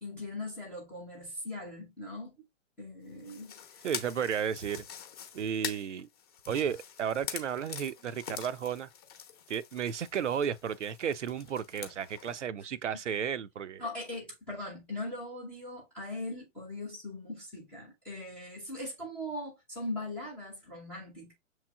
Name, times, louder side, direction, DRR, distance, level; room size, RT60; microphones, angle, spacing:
voice 1, 0.0-2.4 2.8-3.9 13.8-21.3, left 1 dB, 5° left, 0.4 m, -40 dB
sound 1, 3.2-12.4, left 8 dB, 30° left, 0.8 m, -44 dB
voice 2, 3.8-4.8 5.3-6.1 6.5-8.9 9.5-13.8, right 8 dB, 70° right, 0.5 m, -33 dB
6.9 x 3.1 x 2.3 m
figure-of-eight pair, 120°, 38 cm